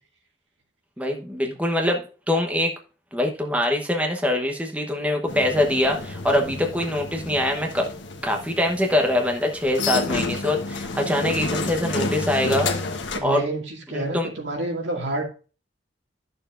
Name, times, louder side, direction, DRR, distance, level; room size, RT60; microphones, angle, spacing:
voice 1, 1.0-2.7 3.1-7.9 8.2-12.7 13.2-13.4 13.9-14.3, left 1 dB, 10° right, 2 dB, 1.0 m, -23 dB
sound 1, 5.3-13.2, left 3 dB, 75° left, 1.1 m, -30 dB
voice 2, 13.1-15.2, right 1 dB, 75° right, 1 dB, 2.2 m, -29 dB
11.0 x 6.8 x 2.5 m, 0.35 s
head